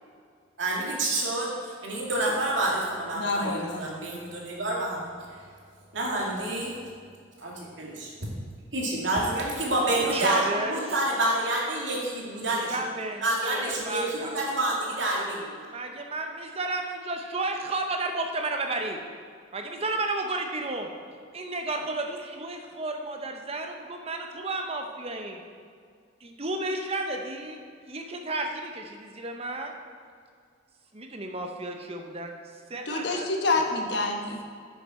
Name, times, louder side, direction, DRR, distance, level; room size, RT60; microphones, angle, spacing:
voice 1, 0.6-5.4 5.9-6.8 7.4-8.1 8.7-12.8 13.2-15.7, right 1 dB, 75° right, -3 dB, 2.2 m, -28 dB
voice 2, 3.1-3.8 32.9-34.4, left 3 dB, 65° left, 2 dB, 1.2 m, -27 dB
voice 3, 10.1-10.8 12.5-14.4 15.7-19.0 19.5-20.9 21.3-25.4 26.2-27.6 27.9-29.7 30.9-32.3 32.7-33.3 33.6-33.7, right 2 dB, 35° right, 4 dB, 0.9 m, -32 dB
9.7 x 7.0 x 4.3 m, 2.1 s
head